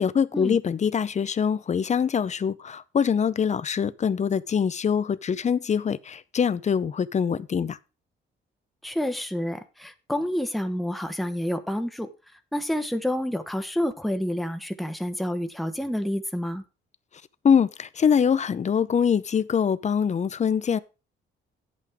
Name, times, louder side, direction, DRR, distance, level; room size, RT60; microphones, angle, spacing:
voice 1, 0.0-7.8 17.4-20.8, left 7 dB, 35° left, 0.7 m, -24 dB
voice 2, 8.8-12.1 12.5-16.6, left 1 dB, ahead, 1.1 m, -28 dB
9.7 x 8.6 x 3.6 m
cardioid pair, 90°, 20 cm